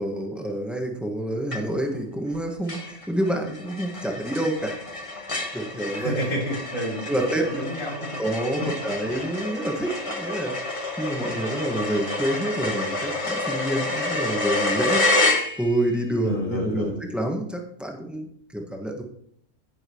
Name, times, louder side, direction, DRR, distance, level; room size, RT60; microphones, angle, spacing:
voice 1, 0.0-4.8 5.1-5.3 5.5-6.2 7.0-7.6 8.2-10.5 11.0-15.1 15.6-18.2 18.5-19.0, right 1 dB, ahead, 1 dB, 1.6 m, -28 dB
sound 1, 1.5-2.0 2.3-2.4 2.7-16.0, left 2 dB, 25° left, 1.4 m, -28 dB
voice 2, 5.9-7.0 7.4-8.1 16.2-17.0, equal, 90° left, -3 dB, 3.7 m, -29 dB
9.9 x 9.3 x 3.1 m, 0.68 s
omnidirectional pair, 1.3 m